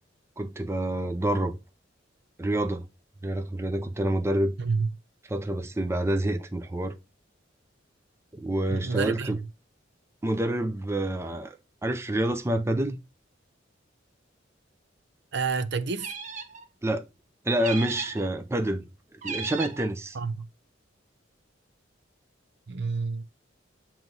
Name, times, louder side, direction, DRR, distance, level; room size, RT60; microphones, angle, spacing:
voice 1, 0.4-1.6 2.4-2.9 3.2-4.5 5.3-7.0 8.3-9.4 10.2-11.6 11.8-13.0 16.8-17.1 17.4-20.2, right 1 dB, 15° right, 0.5 m, -27 dB
voice 2, 8.7-9.4 15.3-16.1 20.1-20.5 22.7-23.2, right 4 dB, 60° right, 0.6 m, -29 dB
sound 1, 16.0-16.6 17.6-18.3 19.2-19.9, right 5 dB, 40° right, 0.9 m, -36 dB
7.9 x 3.0 x 5.3 m
head